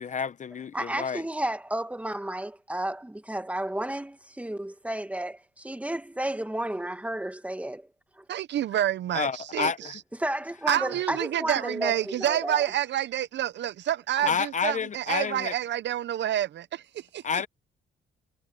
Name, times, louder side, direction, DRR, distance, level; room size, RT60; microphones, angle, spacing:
voice 1, 0.0-1.2 9.1-9.9 14.2-15.5 17.2-17.5, left 6 dB, 40° left, 0.7 m, -29 dB
voice 2, 0.7-7.9 8.2-8.3 10.2-12.7, right 1 dB, 5° right, 1.8 m, -32 dB
voice 3, 8.3-10.0 10.7-17.2, right 11 dB, 65° right, 0.7 m, -28 dB
cardioid pair, 90°, 20 cm